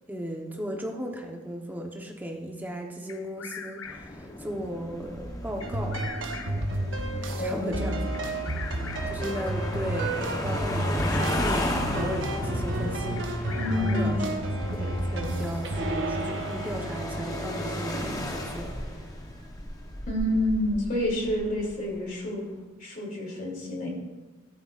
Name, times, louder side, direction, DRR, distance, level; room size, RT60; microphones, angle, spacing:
voice 1, 0.1-6.0 7.2-8.4 8.7-14.2 14.7-18.7, equal, 10° right, 2 dB, 1.0 m, -36 dB
Bird vocalization bird call bird song, 3.1-4.3 5.6-6.7 8.1-9.3 10.7-11.8 13.2-14.3, left 6 dB, 75° left, 0.6 m, -42 dB
sound 1, 3.9-22.0, left 1 dB, 20° left, 1.0 m, -35 dB
sound 2, 5.6-19.0, right 1 dB, 65° right, 1.0 m, -31 dB
voice 2, 7.4-8.1 13.6-14.3 20.0-22.4 22.8-23.9, left 1 dB, 40° left, -2 dB, 3.1 m, -29 dB
14.0 x 12.0 x 2.5 m, 1.2 s
head